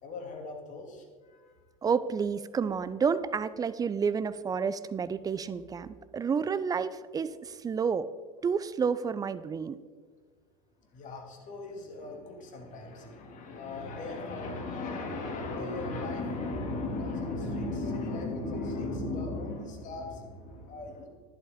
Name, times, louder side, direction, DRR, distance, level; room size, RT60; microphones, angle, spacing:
voice 1, 0.0-1.7 10.9-21.1, left 2 dB, 45° left, 2 dB, 2.6 m, -36 dB
voice 2, 1.8-8.1 8.4-9.8, right 6 dB, 20° right, 15 dB, 0.5 m, -30 dB
11.5 x 11.0 x 3.7 m, 1.5 s
hypercardioid pair, 80°, 18 cm